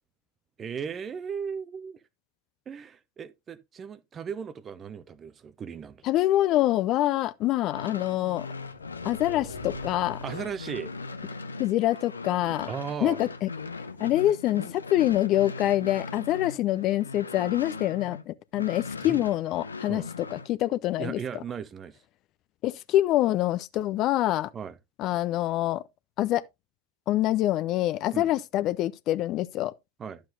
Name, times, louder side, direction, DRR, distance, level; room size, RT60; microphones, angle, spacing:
voice 1, 0.6-2.0 2.7-6.0 10.2-10.9 12.7-13.2 19.0-19.2 19.9-20.1 21.0-22.0 24.5-24.7 28.1-28.3 30.0-30.2, right 7 dB, 20° right, 0.8 m, -36 dB
voice 2, 6.0-8.5 9.0-10.2 11.6-12.7 13.0-13.5 14.0-20.0 20.3-21.2 22.6-24.5 25.0-25.8 26.2-26.4 27.1-29.7, left 14 dB, 35° left, 0.5 m, -25 dB
sound 1, 7.6-18.2 18.5-20.5, left 3 dB, 75° left, 0.8 m, -39 dB
sound 2, 8.5-11.4, left 3 dB, 60° left, 1.8 m, -46 dB
12.0 x 7.5 x 2.6 m
figure-of-eight pair, 90°, 0 cm